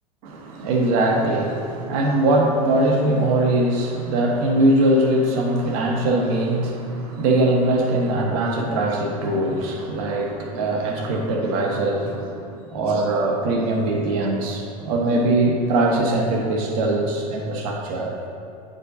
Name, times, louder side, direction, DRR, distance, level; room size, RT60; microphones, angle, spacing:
voice 1, 0.2-18.1, right 1 dB, 60° right, 0 dB, 1.2 m, -21 dB
8.9 x 5.1 x 2.7 m, 2.6 s
hypercardioid pair, 90°, 20 cm